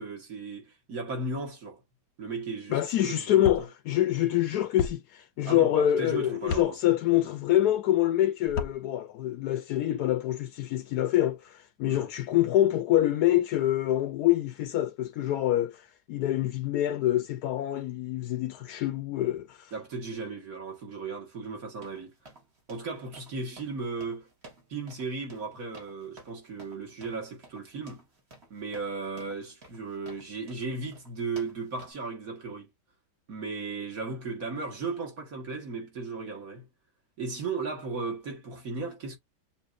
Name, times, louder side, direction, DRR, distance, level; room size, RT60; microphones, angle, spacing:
voice 1, 0.0-1.8 2.2-3.5 5.4-6.8 11.9-12.1 19.7-22.1 22.7-24.3 24.7-28.0 28.5-32.7 33.3-36.7 37.2-39.2, right 4 dB, 55° right, 2.2 m, -36 dB
voice 2, 2.7-19.7, left 13 dB, 70° left, 1.1 m, -26 dB
sound 1, 3.4-3.6 4.8-4.9 6.5-6.7 8.4-8.8, left 5 dB, 90° left, 1.6 m, -31 dB
sound 2, 21.8-31.9, right 2 dB, 40° right, 2.0 m, -53 dB
6.8 x 2.8 x 2.6 m
omnidirectional pair, 1.8 m